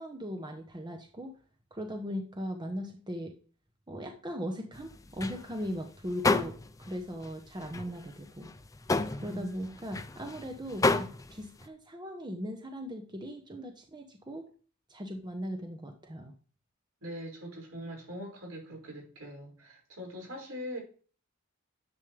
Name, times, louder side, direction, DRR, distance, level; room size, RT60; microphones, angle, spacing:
voice 1, 0.0-1.3 1.7-3.3 3.9-8.5 9.2-14.5 14.9-16.3, equal, 20° right, 1.0 m, -38 dB
sound 1, 4.7-7.0 7.2-11.7, left 3 dB, 15° left, 0.5 m, -31 dB
voice 2, 9.2-9.7 17.0-20.8, equal, 80° right, 5.8 m, -42 dB
11.0 x 7.4 x 3.4 m
head